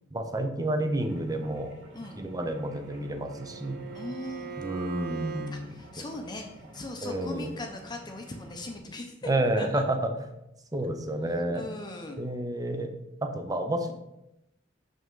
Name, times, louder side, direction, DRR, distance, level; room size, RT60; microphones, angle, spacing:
voice 1, 0.1-1.7 2.2-3.9 4.6-5.7 7.0-7.5 9.2-10.3 10.7-11.7 12.2-12.9 13.2-13.9, right 1 dB, 20° right, 6 dB, 0.7 m, -30 dB
sound 1, 1.0-8.8, right 1 dB, 90° right, 1.8 m, -50 dB
voice 2, 1.9-2.2 3.0-3.1 3.9-4.5 5.5-6.5 6.7-9.2 9.6-9.8 11.5-12.2, left 1 dB, 25° left, 3 dB, 0.7 m, -39 dB
Bowed string instrument, 2.4-5.6, right 5 dB, 55° right, 0.6 m, -41 dB
6.5 x 5.5 x 3.8 m, 0.86 s
head